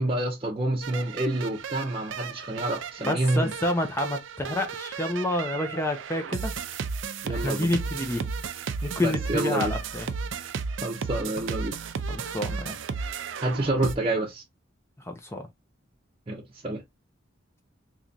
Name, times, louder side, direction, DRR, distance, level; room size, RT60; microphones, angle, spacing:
voice 1, 0.0-3.5 7.2-7.7 9.0-9.7 10.8-11.8 13.4-14.4 16.3-16.8, right 1 dB, 30° right, 0.7 m, -28 dB
sound 1, 0.8-14.0, right 5 dB, 75° right, 0.4 m, -34 dB
voice 2, 3.0-6.5 7.3-8.3 8.8-10.1 12.1-12.7 15.0-15.5, left 1 dB, 15° left, 0.6 m, -29 dB
3.7 x 3.0 x 2.6 m
head